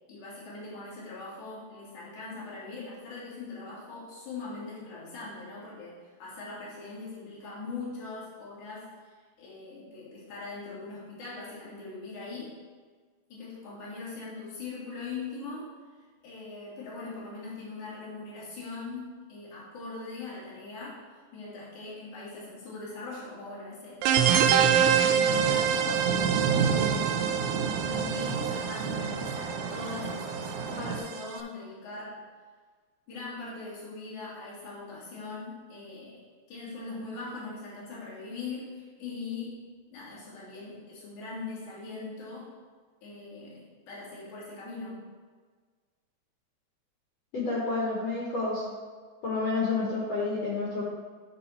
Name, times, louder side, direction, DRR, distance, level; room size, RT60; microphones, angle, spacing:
voice 1, 0.1-12.5 13.3-15.8 16.2-24.6 24.8-26.2 26.6-27.5 27.8-32.2 33.1-36.2 36.5-42.5 43.0-45.0, left 3 dB, 50° left, -8 dB, 3.5 m, -41 dB
sound 1, 24.0-31.3, right 8 dB, 90° right, 2.8 m, -26 dB
sound 2, 25.3-31.0, right 5 dB, 70° right, 3.2 m, -31 dB
voice 2, 47.3-48.6 49.2-50.8, left 3 dB, 85° left, -5 dB, 1.4 m, -29 dB
11.0 x 4.1 x 4.3 m, 1.5 s
omnidirectional pair, 4.9 m